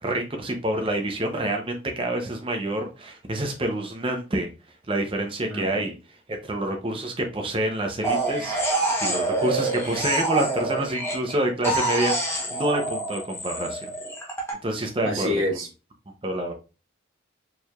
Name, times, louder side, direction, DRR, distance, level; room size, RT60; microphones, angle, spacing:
voice 1, 0.0-4.5 4.9-5.9 6.4-13.9 14.6-15.3 16.2-16.5, right 1 dB, 25° right, 0.6 m, -27 dB
voice 2, 5.5-5.8 15.0-15.7, left 1 dB, 70° right, 1.5 m, -27 dB
sound 1, 8.0-11.3 11.6-14.5, right 2 dB, 10° left, 0.9 m, -26 dB
4.5 x 3.3 x 2.3 m
head